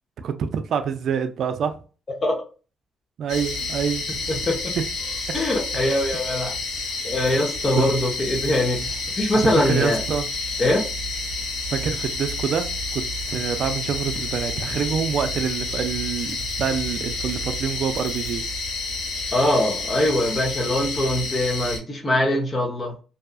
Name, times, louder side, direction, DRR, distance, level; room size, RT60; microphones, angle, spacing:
voice 1, 0.2-1.8 3.2-4.0 9.4-10.3 11.7-18.4, right 7 dB, 65° right, 0.3 m, -26 dB
sound 1, 3.3-21.8, left 3 dB, 80° left, 1.4 m, -29 dB
voice 2, 4.3-4.7 5.3-6.5 7.0-10.0 10.6-10.8 19.3-22.9, left 1 dB, 30° left, 0.9 m, -22 dB
2.6 x 2.3 x 2.4 m
cardioid pair, 90°, 0 cm